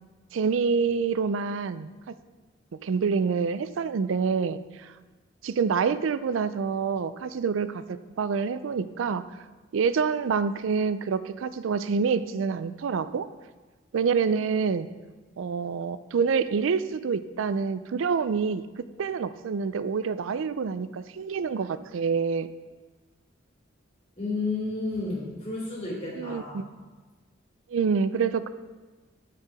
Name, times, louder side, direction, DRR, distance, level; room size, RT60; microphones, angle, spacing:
voice 1, 0.3-1.9 2.8-4.9 5.4-9.2 9.7-13.3 13.9-14.9 15.4-22.5 26.2-26.6 27.7-28.5, right 5 dB, 80° right, 14 dB, 0.4 m, -27 dB
voice 2, 24.2-26.6, left 3 dB, 30° left, -6 dB, 2.5 m, -31 dB
8.6 x 4.7 x 5.0 m, 1.3 s
head